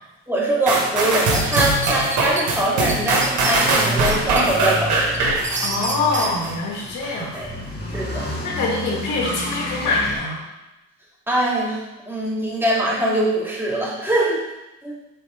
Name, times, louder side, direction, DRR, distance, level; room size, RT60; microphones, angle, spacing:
voice 1, 0.3-5.2 7.3-7.5 7.9-8.3 11.3-11.8 12.1-14.4 14.8-15.0, right 1 dB, 5° right, -5 dB, 2.2 m, -22 dB
sound 1, 0.7-6.5 7.0-7.1, right 2 dB, 80° right, 1.5 m, -21 dB
sound 2, 1.0-2.4 2.9-3.0 3.2-4.4 4.8-6.3, right 3 dB, 25° right, 0.8 m, -29 dB
sound 3, 3.5-10.2, equal, 35° left, 1.6 m, -31 dB
voice 2, 5.6-7.4 8.4-10.4, left 3 dB, 85° left, -2 dB, 1.9 m, -24 dB
5.8 x 4.0 x 4.9 m, 0.98 s
cardioid pair, 90°, 30 cm